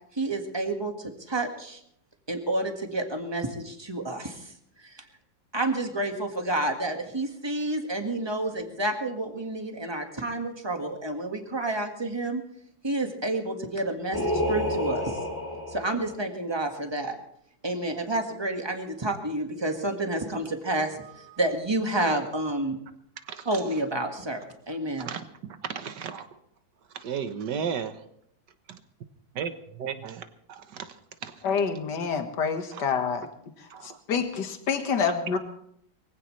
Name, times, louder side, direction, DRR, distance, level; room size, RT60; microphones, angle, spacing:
voice 1, 0.1-1.8 2.3-4.5 4.8-5.0 5.5-12.4 12.8-15.2 15.7-17.2 17.6-22.8 23.4-25.1, right 2 dB, 15° right, 4 dB, 1.7 m, -29 dB
Singing, 14.1-16.1, left 1 dB, 10° left, 2.3 m, -29 dB
voice 2, 23.2-23.6 25.0-26.3 26.9-28.0 29.3-29.5 29.8-30.9 31.2-31.4 32.7-32.8 33.7-34.0, right 7 dB, 65° right, 9 dB, 1.7 m, -34 dB
voice 3, 31.4-33.3 33.6-35.4, left 6 dB, 65° left, 6 dB, 2.1 m, -27 dB
23.0 x 16.5 x 3.3 m, 0.71 s
omnidirectional pair, 2.1 m